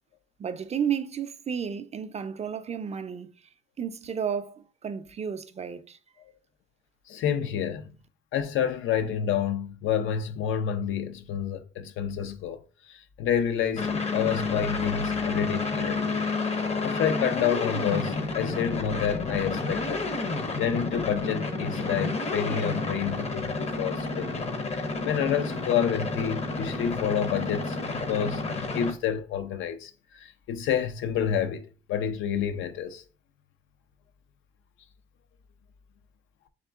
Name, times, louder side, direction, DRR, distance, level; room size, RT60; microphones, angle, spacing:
voice 1, 0.4-3.3 3.8-6.0, right 7 dB, 35° right, 0.4 m, -32 dB
voice 2, 7.1-8.0 8.3-20.1 20.6-24.5 24.7-33.0, left 8 dB, 80° left, 0.5 m, -29 dB
sound 1, 13.8-28.9, left 3 dB, 30° left, 0.6 m, -30 dB
3.6 x 3.0 x 3.5 m
cardioid pair, 90°, 20 cm